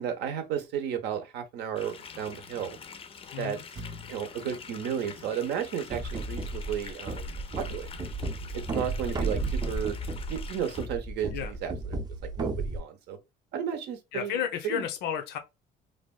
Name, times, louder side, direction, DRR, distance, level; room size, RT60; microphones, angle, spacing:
voice 1, 0.0-2.8 3.4-3.6 4.1-7.9 8.5-10.0 10.3-13.2 13.5-14.8, right 8 dB, 80° right, 0.7 m, -33 dB
sound 1, 1.8-10.9, left 6 dB, 35° left, 0.4 m, -46 dB
sound 2, 3.8-4.2 5.9-12.8, right 2 dB, 25° right, 0.4 m, -34 dB
voice 2, 14.1-15.4, left 9 dB, 80° left, 0.6 m, -32 dB
3.3 x 2.2 x 2.2 m
cardioid pair, 110°, 17 cm